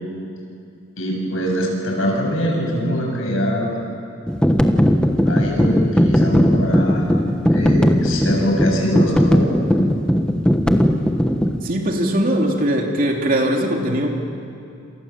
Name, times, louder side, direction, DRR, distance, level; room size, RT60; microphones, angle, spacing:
voice 1, 1.0-3.8 5.3-7.0 7.5-9.6, equal, 80° left, 0 dB, 7.9 m, -23 dB
sound 1, 4.3-11.6, equal, 5° left, 1.2 m, -17 dB
voice 2, 11.6-14.1, right 1 dB, 45° right, 1 dB, 3.1 m, -20 dB
29.0 x 27.5 x 7.5 m, 2.7 s
head